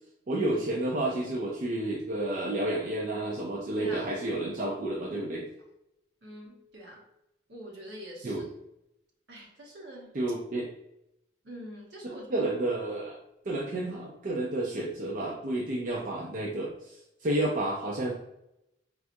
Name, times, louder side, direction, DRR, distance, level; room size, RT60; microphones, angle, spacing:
voice 1, 0.3-5.5 8.2-8.5 10.1-10.7 12.3-13.2 13.5-18.1, right 1 dB, 45° right, -2 dB, 0.4 m, -31 dB
voice 2, 3.8-4.1 6.2-7.0 7.5-8.4 9.3-10.2 11.4-12.5, equal, 70° right, -2 dB, 1.1 m, -44 dB
4.5 x 2.3 x 2.6 m, 0.84 s
head